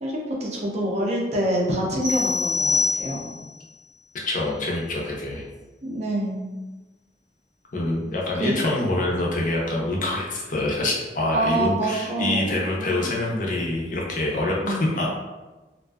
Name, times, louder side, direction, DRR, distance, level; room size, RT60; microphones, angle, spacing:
voice 1, 0.0-3.3 5.8-6.5 8.4-8.5 11.3-13.0 14.6-14.9, right 1 dB, 40° right, -2 dB, 0.4 m, -26 dB
sound 1, 2.0-3.5, left 4 dB, 75° right, 0.7 m, -24 dB
voice 2, 4.2-5.5 7.7-15.1, left 2 dB, 45° left, -2 dB, 0.5 m, -25 dB
2.5 x 2.3 x 2.2 m, 1.2 s
head